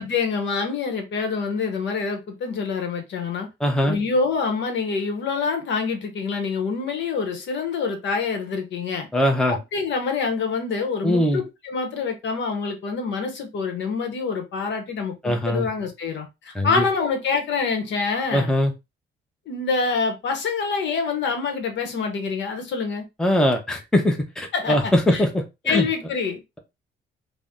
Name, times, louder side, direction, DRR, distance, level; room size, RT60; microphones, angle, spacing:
voice 1, 0.0-3.5 3.9-9.1 9.5-18.5 19.5-23.1 24.5-25.2 25.7-26.4, left 4 dB, 65° left, 0.9 m, -26 dB
voice 2, 3.6-4.0 9.1-9.6 11.0-11.4 15.2-15.7 16.6-16.8 18.3-18.7 23.2-25.9, left 1 dB, 5° left, 0.6 m, -21 dB
2.6 x 2.0 x 3.5 m
cardioid pair, 90°, 20 cm